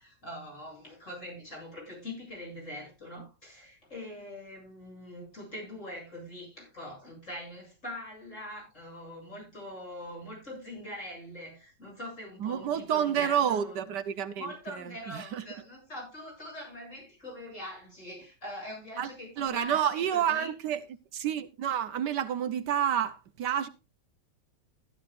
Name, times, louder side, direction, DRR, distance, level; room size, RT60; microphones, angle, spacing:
voice 1, 0.0-13.8 14.4-20.5, left 1 dB, 40° left, 8.6 m, -43 dB
voice 2, 12.4-14.5 15.1-15.4 19.0-19.1 19.4-20.8 21.1-23.7, right 9 dB, 70° right, 1.4 m, -29 dB
15.0 x 11.5 x 2.5 m
omnidirectional pair, 1.9 m